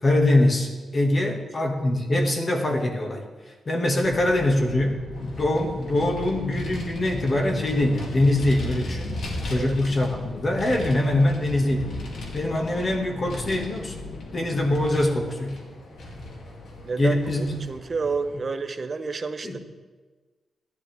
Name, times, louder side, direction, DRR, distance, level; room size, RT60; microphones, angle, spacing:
voice 1, 0.0-3.2 3.7-9.2 9.5-12.0 12.3-14.0 14.3-15.7 17.0-17.5 19.4-19.6, left 1 dB, 30° left, 2 dB, 1.8 m, -23 dB
sound 1, 4.0-14.9, left 3 dB, 55° left, 1.2 m, -39 dB
Vehicle, 5.1-18.4, left 1 dB, 70° left, 2.4 m, -38 dB
voice 2, 16.8-19.6, right 4 dB, 35° right, 9 dB, 0.7 m, -30 dB
16.0 x 12.0 x 3.4 m, 1.3 s
wide cardioid pair, 145°, 0 cm